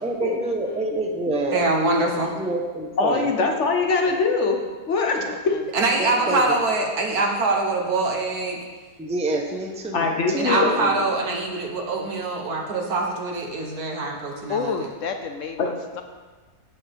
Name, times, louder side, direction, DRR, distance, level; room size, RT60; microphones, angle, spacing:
voice 1, 0.0-1.6 2.3-3.3 6.0-6.6 9.0-11.0, right 2 dB, 5° right, 1 dB, 0.7 m, -27 dB
voice 2, 1.5-2.3 5.7-8.6 10.4-14.7, right 3 dB, 65° right, 1 dB, 1.5 m, -24 dB
voice 3, 2.2-2.6 3.8-4.1 5.2-5.6 6.0-6.4 14.5-16.0, left 5 dB, 65° left, 6 dB, 0.8 m, -32 dB
voice 4, 3.0-4.6 4.9-5.3 9.9-10.7 15.6-15.7, left 4 dB, 50° left, 3 dB, 1.1 m, -22 dB
16.0 x 6.2 x 3.5 m, 1.4 s
omnidirectional pair, 1.8 m